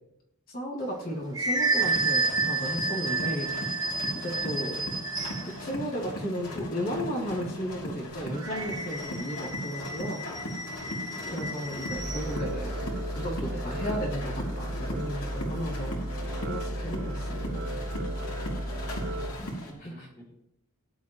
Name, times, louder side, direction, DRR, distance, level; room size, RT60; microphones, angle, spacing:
voice 1, 0.5-3.9 4.2-4.7 5.4-10.3 11.3-12.7 13.1-16.0 16.4-17.7 19.8-20.1, equal, 45° left, -3 dB, 3.1 m, -34 dB
sound 1, 0.8-5.6 8.3-12.3, right 3 dB, 15° right, 1.4 m, -31 dB
sound 2, 1.8-19.7, equal, 85° left, 3.1 m, -38 dB
voice 2, 4.1-4.7 10.8-11.5 19.0-20.4, equal, 10° left, -3 dB, 3.0 m, -50 dB
sound 3, 11.9-19.3, right 1 dB, 50° right, 1.1 m, -34 dB
18.5 x 10.0 x 3.1 m, 0.80 s
head